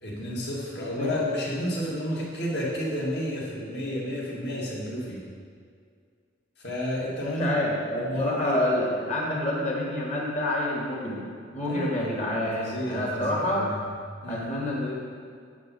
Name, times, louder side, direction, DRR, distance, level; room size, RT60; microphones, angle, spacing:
voice 1, 0.0-5.3 6.6-7.5 8.0-8.7 11.6-13.9 14.2-14.5, equal, 55° left, -5 dB, 2.0 m, -31 dB
voice 2, 7.2-13.7 14.3-15.0, left 1 dB, 35° left, -3 dB, 1.6 m, -28 dB
8.3 x 7.3 x 4.1 m, 2.1 s
head